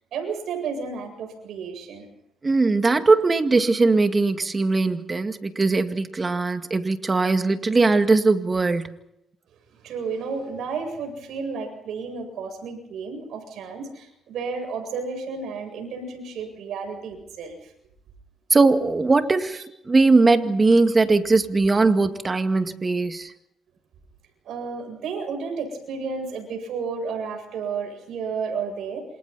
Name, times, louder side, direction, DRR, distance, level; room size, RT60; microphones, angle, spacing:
voice 1, 0.1-2.1 9.8-17.7 24.4-29.1, right 5 dB, 75° right, 5 dB, 8.0 m, -32 dB
voice 2, 2.4-9.0 18.5-23.3, right 3 dB, 30° right, 7 dB, 2.1 m, -20 dB
28.5 x 27.0 x 4.2 m, 0.79 s
cardioid pair, 90°, 0 cm